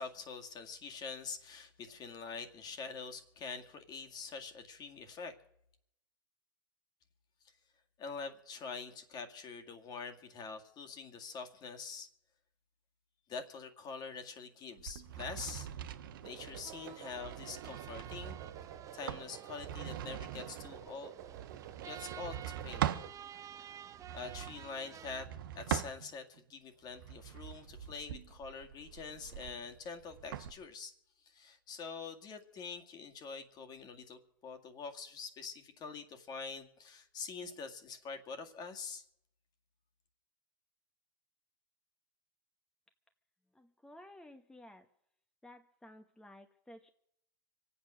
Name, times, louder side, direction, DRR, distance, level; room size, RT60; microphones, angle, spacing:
voice 1, 0.0-5.4 8.0-12.1 13.3-15.7 16.2-18.4 18.9-21.2 21.8-22.8 24.1-25.3 25.6-30.9 31.2-39.0, left 5 dB, 35° left, 6 dB, 2.1 m, -45 dB
sound 1, 14.8-23.1 23.9-26.4 26.9-30.5, right 10 dB, 80° right, 1.2 m, -42 dB
sound 2, 16.2-23.1, right 11 dB, 65° right, 1.8 m, -51 dB
sound 3, 16.6-25.3, right 10 dB, 30° right, 0.8 m, -52 dB
voice 2, 43.5-44.9 45.4-46.9, left 1 dB, 5° left, 5 dB, 1.1 m, -55 dB
24.5 x 8.6 x 6.3 m, 0.75 s
hypercardioid pair, 110°, 11 cm